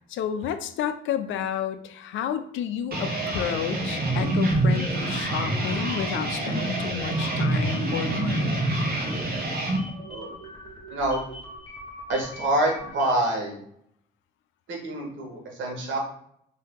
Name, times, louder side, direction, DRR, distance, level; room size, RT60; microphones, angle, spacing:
voice 1, 0.1-8.7, left 9 dB, 75° left, 10 dB, 0.4 m, -31 dB
sound 1, 2.9-9.8, right 1 dB, 50° right, 0.8 m, -26 dB
sound 2, 3.8-13.3, left 1 dB, 25° left, 1.1 m, -42 dB
voice 2, 10.9-11.2 12.1-13.6 14.7-16.0, right 1 dB, 75° right, 1 dB, 1.1 m, -26 dB
2.8 x 2.7 x 3.5 m, 0.68 s
cardioid pair, 90°, 20 cm